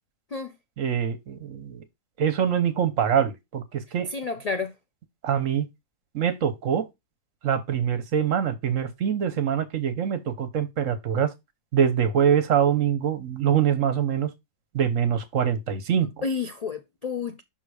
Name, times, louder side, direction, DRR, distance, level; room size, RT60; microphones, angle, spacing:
voice 1, 0.8-1.8 2.2-4.1 5.2-5.7 6.1-6.9 7.4-11.3 11.7-14.3 14.7-16.1, right 8 dB, 65° right, 1.2 m, -24 dB
voice 2, 4.1-4.7 16.2-17.4, left 5 dB, 55° left, 0.4 m, -30 dB
5.8 x 3.7 x 4.8 m
omnidirectional pair, 1.5 m